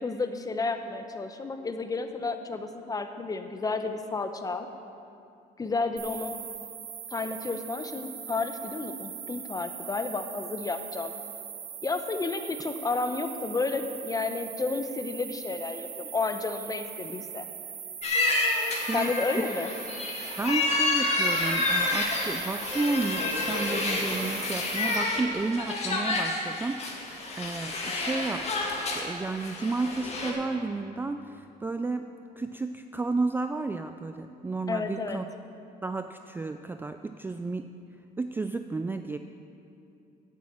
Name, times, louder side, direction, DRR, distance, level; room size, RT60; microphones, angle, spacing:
voice 1, 0.0-4.7 5.6-6.3 7.1-11.1 11.8-17.5 18.9-19.7 34.7-35.2, left 3 dB, 20° left, 7 dB, 0.8 m, -31 dB
sound 1, 6.0-25.0, right 8 dB, 85° right, 1.6 m, -41 dB
sound 2, 18.0-30.3, left 2 dB, 40° left, 1.9 m, -29 dB
voice 2, 20.4-28.5 28.9-32.1 32.4-35.2 35.8-37.7 38.2-39.2, right 3 dB, 10° right, 8 dB, 0.3 m, -32 dB
9.4 x 8.5 x 7.3 m, 2.7 s
cardioid pair, 110°, 17 cm